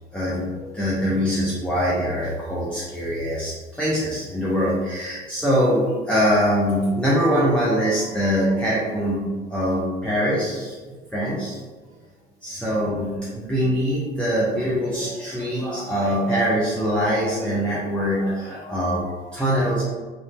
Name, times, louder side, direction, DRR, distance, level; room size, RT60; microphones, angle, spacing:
voice 1, 0.1-9.2 9.5-10.7 11.1-11.6 12.4-19.8, equal, 5° left, -8 dB, 0.7 m, -23 dB
3.1 x 2.6 x 3.2 m, 1.4 s
figure-of-eight pair, 60°, 29 cm